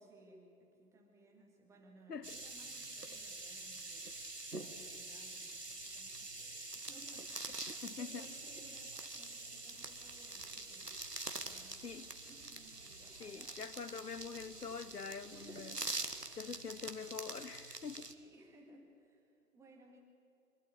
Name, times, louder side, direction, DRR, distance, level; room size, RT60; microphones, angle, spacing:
voice 1, 0.0-4.2 4.6-12.0 12.2-13.6 15.3-16.5 18.0-20.0, right 1 dB, 5° right, 1.9 m, -62 dB
sound 1, 2.2-18.1, right 2 dB, 90° right, 1.6 m, -46 dB
voice 2, 7.8-8.3 11.8-12.1 13.2-15.8 16.3-18.1, left 5 dB, 80° left, 0.9 m, -45 dB
sound 2, 9.7-16.6, right 4 dB, 30° right, 1.8 m, -65 dB
24.0 x 12.5 x 9.7 m
figure-of-eight pair, 130°, 46 cm